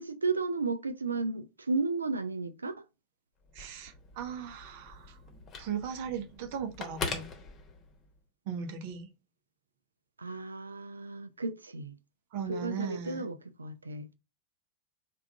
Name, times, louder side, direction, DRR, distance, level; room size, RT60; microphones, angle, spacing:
voice 1, 0.0-2.8 10.2-12.0 12.5-14.1, right 3 dB, 80° right, 0.4 m, -33 dB
Telephone, 3.4-8.2, left 4 dB, 30° left, 1.1 m, -42 dB
voice 2, 3.5-5.2 5.6-7.3 8.5-9.1 12.3-13.3, right 7 dB, 50° right, 0.7 m, -37 dB
3.5 x 2.5 x 4.4 m
figure-of-eight pair, 90°, 0 cm